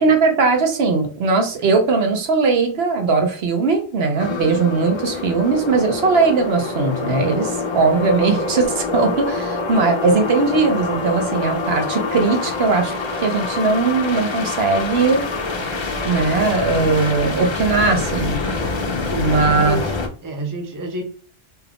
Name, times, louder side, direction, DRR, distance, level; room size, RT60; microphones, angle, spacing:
voice 1, 0.0-13.0 13.2-15.3 16.0-18.4 19.2-19.8, right 4 dB, 75° right, 4 dB, 1.0 m, -19 dB
sound 1, 4.2-20.1, left 3 dB, 40° left, 0.4 m, -25 dB
voice 2, 19.1-20.0 20.2-21.0, right 1 dB, 25° right, 3 dB, 0.6 m, -28 dB
2.8 x 2.4 x 3.4 m, 0.42 s
omnidirectional pair, 1.1 m